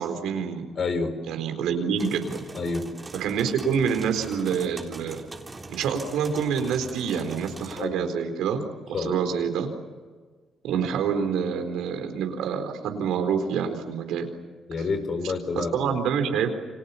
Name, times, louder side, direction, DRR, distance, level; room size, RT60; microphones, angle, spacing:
voice 1, 0.0-0.7 1.3-2.4 3.1-5.2 5.7-8.6 9.0-9.7 10.6-14.3 15.6-16.5, right 7 dB, 85° right, 6 dB, 4.2 m, -27 dB
voice 2, 0.8-1.2 2.5-2.9 7.8-8.1 8.9-9.2 14.7-15.9, left 4 dB, 50° left, 9 dB, 4.3 m, -28 dB
sound 1, 1.9-7.8, right 2 dB, 20° right, 3.6 m, -41 dB
29.5 x 25.5 x 7.1 m, 1.5 s
cardioid pair, 90°, 0 cm